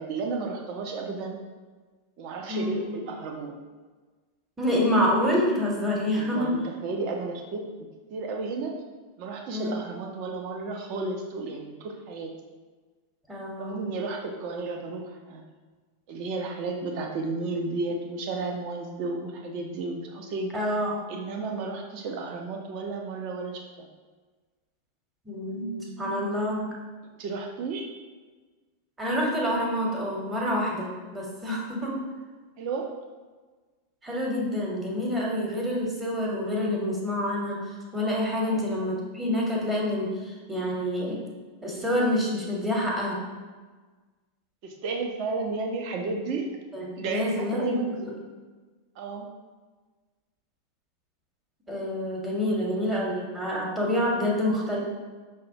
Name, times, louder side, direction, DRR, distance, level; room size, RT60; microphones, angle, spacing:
voice 1, 0.0-1.4 2.2-3.5 6.2-8.7 9.2-12.3 13.6-15.4 16.1-20.5 21.1-23.9 27.2-27.9 32.6-32.9 38.4-38.7 44.6-46.5 47.0-47.9 49.0-49.3, right 3 dB, 45° right, 2 dB, 0.5 m, -33 dB
voice 2, 2.5-2.8 4.6-6.6 9.5-9.8 13.3-13.8 20.5-21.0 25.2-26.6 29.0-31.9 34.0-37.6 37.9-40.1 40.5-41.2 41.6-43.2 46.7-48.0 51.7-54.8, left 1 dB, 15° right, -3 dB, 0.9 m, -27 dB
5.5 x 2.2 x 2.7 m, 1.4 s
figure-of-eight pair, 90°, 0 cm